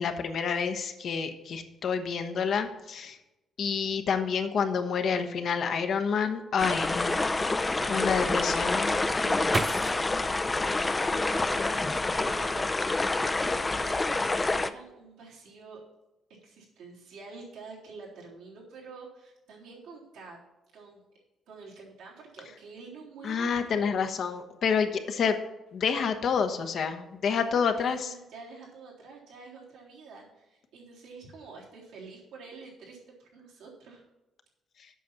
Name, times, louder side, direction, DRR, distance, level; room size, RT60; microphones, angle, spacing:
voice 1, 0.0-3.2 3.6-7.3 7.9-9.0 23.2-25.4 25.7-28.1, left 6 dB, 60° left, 7 dB, 1.1 m, -28 dB
sound 1, 6.6-14.7, left 2 dB, 20° left, 0.5 m, -27 dB
voice 2, 8.0-8.6 9.0-14.0 14.4-15.8 16.4-20.4 20.7-21.0 21.5-24.0 27.3-34.0, right 4 dB, 90° right, -5 dB, 3.5 m, -48 dB
sound 2, 8.5-11.6 12.1-12.9 13.2-13.7, right 4 dB, 35° right, 0.4 m, -38 dB
8.3 x 5.9 x 7.5 m, 0.99 s
cardioid pair, 90°, 0 cm